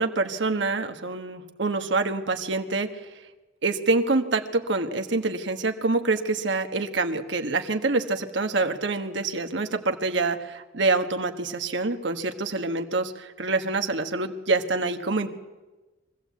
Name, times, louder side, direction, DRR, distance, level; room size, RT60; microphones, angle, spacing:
voice 1, 0.0-3.1 3.6-15.3, right 3 dB, 70° right, 6 dB, 1.4 m, -26 dB
23.5 x 15.5 x 8.4 m, 1.2 s
head